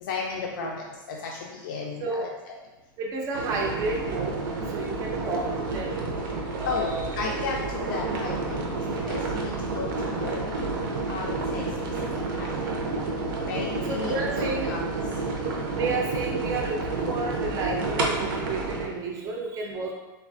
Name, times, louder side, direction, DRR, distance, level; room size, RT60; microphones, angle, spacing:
voice 1, 0.0-2.6 6.7-8.6 8.9-10.4 11.1-11.7 12.4-12.6 13.4-14.8, left 4 dB, 80° left, -1 dB, 0.4 m, -34 dB
voice 2, 2.0-2.4 3.0-4.4 4.7-6.0 6.6-7.1 13.9-14.7 15.7-19.9, right 3 dB, 30° right, -1 dB, 0.4 m, -31 dB
sound 1, 3.3-18.9, right 3 dB, 80° right, 0.6 m, -30 dB
3.2 x 2.3 x 2.5 m, 1.1 s
supercardioid pair, 140°, 11 cm